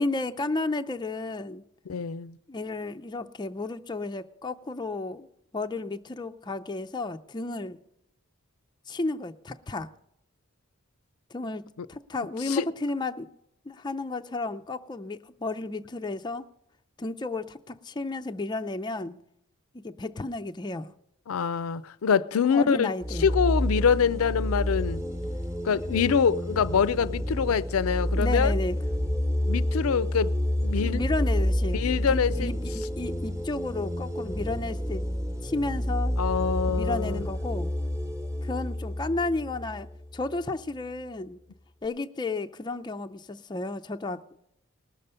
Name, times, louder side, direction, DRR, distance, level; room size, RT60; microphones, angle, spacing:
voice 1, 0.0-1.6 2.5-5.3 5.5-7.8 8.9-9.9 11.3-11.6 11.9-13.3 13.7-16.4 17.0-19.2 19.7-20.9 22.5-23.3 28.1-28.8 30.8-31.8 32.1-35.0 35.4-36.2 36.7-37.7 38.4-39.9 40.1-41.4 41.8-44.4, left 2 dB, 20° left, 0.4 m, -32 dB
voice 2, 1.9-2.4 12.5-12.7 21.3-22.9 23.2-25.0 25.6-28.5 29.5-30.3 30.6-31.0 31.7-32.5 36.2-37.3, left 6 dB, 80° left, 0.4 m, -25 dB
sound 1, 23.0-40.4, equal, 15° right, 1.0 m, -29 dB
19.5 x 6.7 x 5.5 m
head